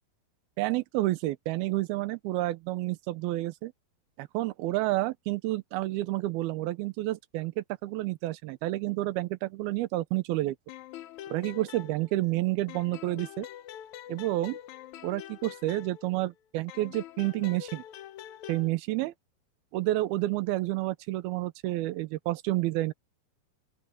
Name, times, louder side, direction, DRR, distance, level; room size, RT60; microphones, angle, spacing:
voice 1, 0.6-3.7 4.2-10.6 11.3-13.5 14.1-14.6 15.0-17.8 18.5-19.1 19.7-22.9, right 17 dB, 80° right, 2.7 m, -30 dB
sound 1, 10.7-12.4 12.7-16.3 16.7-18.7, left 12 dB, 80° left, 1.7 m, -45 dB
open air
omnidirectional pair, 4.4 m